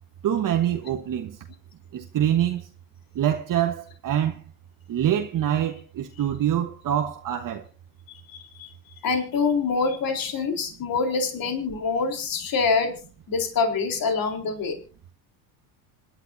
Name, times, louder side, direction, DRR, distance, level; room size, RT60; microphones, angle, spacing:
voice 1, 0.2-1.4 1.9-2.6 3.1-4.4 4.9-7.6, right 10 dB, 40° right, 1.4 m, -25 dB
voice 2, 8.3-8.7 9.0-12.9 13.3-14.8, left 4 dB, 45° left, 4.2 m, -25 dB
26.5 x 11.5 x 2.8 m
supercardioid pair, 90°, 48 cm